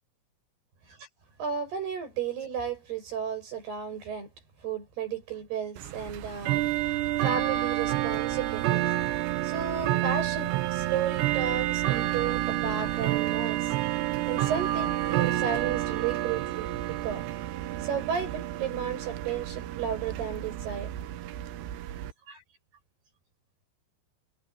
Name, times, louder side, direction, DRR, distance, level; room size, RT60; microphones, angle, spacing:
voice 1, 1.4-4.3 4.6-8.9 9.4-17.2 17.8-20.9 22.3-22.4, right 7 dB, 55° right, 9.6 m, -33 dB
Bell / Tick-tock, 5.8-22.1, right 14 dB, 75° right, 2.8 m, -29 dB
omnidirectional pair, 5.7 m